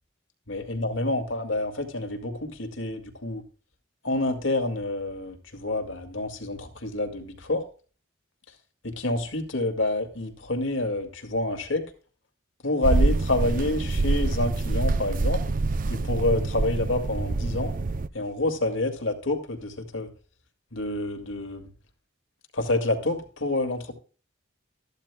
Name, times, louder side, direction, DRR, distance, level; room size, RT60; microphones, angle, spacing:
voice 1, 0.5-3.4 4.0-7.6 8.8-11.9 12.6-15.4 15.9-17.7 18.1-20.1 20.7-21.7 22.5-23.9, left 2 dB, 75° left, 5 dB, 2.1 m, -28 dB
sound 1, 12.8-18.1, right 3 dB, 45° right, 0.5 m, -26 dB
14.0 x 12.0 x 2.2 m, 0.37 s
head